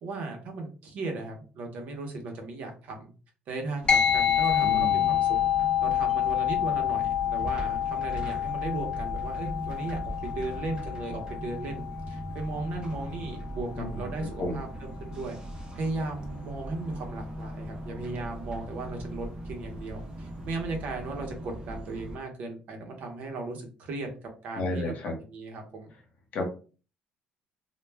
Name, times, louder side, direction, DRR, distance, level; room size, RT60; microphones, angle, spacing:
voice 1, 0.0-3.1 3.5-5.4 5.8-15.4 15.7-24.1 24.4-25.9, right 3 dB, 60° right, 3 dB, 0.8 m, -36 dB
sound 1, 3.8-22.2, equal, 30° right, 0.6 m, -39 dB
sound 2, 3.9-13.6, left 10 dB, 30° left, 0.6 m, -28 dB
voice 2, 4.6-5.2 13.8-14.6 24.5-25.1 26.3-26.5, left 1 dB, 55° left, 3 dB, 0.9 m, -33 dB
2.3 x 2.1 x 3.3 m, 0.36 s
cardioid pair, 130°, 3 cm